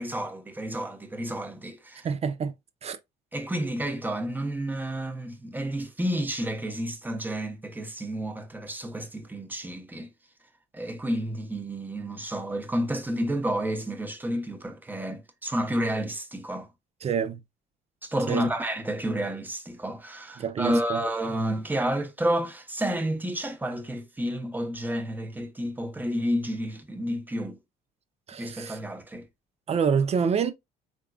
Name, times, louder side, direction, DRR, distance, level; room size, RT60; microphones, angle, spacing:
voice 1, 0.0-2.1 3.3-10.1 10.7-16.7 18.0-27.6 28.4-29.3, right 1 dB, 10° right, 0.9 m, -30 dB
voice 2, 2.0-2.5 2.8-3.0 17.0-17.4 18.3-18.5 20.4-21.0 28.3-28.8 29.7-30.5, right 6 dB, 40° right, 0.6 m, -27 dB
3.8 x 3.6 x 2.3 m
cardioid pair, 110°, 17 cm